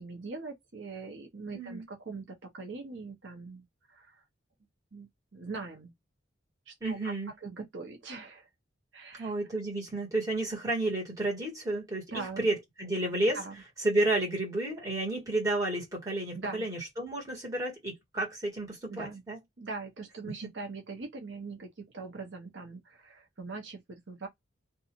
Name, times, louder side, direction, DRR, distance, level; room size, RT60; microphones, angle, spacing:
voice 1, 0.0-4.2 4.9-5.9 6.7-7.1 7.4-8.5 8.9-9.3 12.1-12.5 13.3-13.6 16.3-16.7 18.9-19.2 19.6-24.3, right 3 dB, 70° right, 0.8 m, -42 dB
voice 2, 1.5-1.8 6.8-7.3 9.2-13.4 13.8-19.4, right 2 dB, 20° right, 1.4 m, -31 dB
2.5 x 2.4 x 2.8 m
head